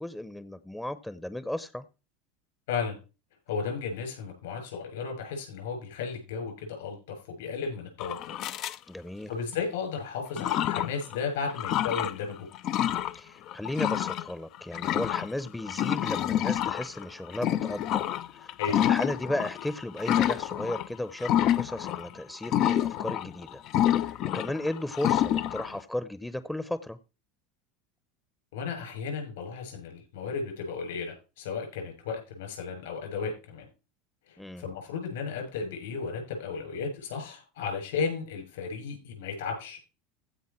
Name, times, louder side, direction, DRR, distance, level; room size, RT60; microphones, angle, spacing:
voice 1, 0.0-1.9 8.9-9.3 13.1-18.0 18.3-23.6 24.0-27.0 34.4-34.6, left 1 dB, 5° left, 0.8 m, -35 dB
voice 2, 3.5-8.2 9.3-12.5 18.6-18.9 28.5-33.7 34.3-39.8, left 5 dB, 75° left, 7.5 m, -34 dB
sound 1, 8.0-8.8 9.5-9.6 10.3-11.2 11.5-12.2 12.5-13.2 13.5-20.9 21.2-22.1 22.4-25.8, left 11 dB, 50° left, 0.5 m, -28 dB
15.5 x 5.3 x 4.5 m
hypercardioid pair, 85°, 0 cm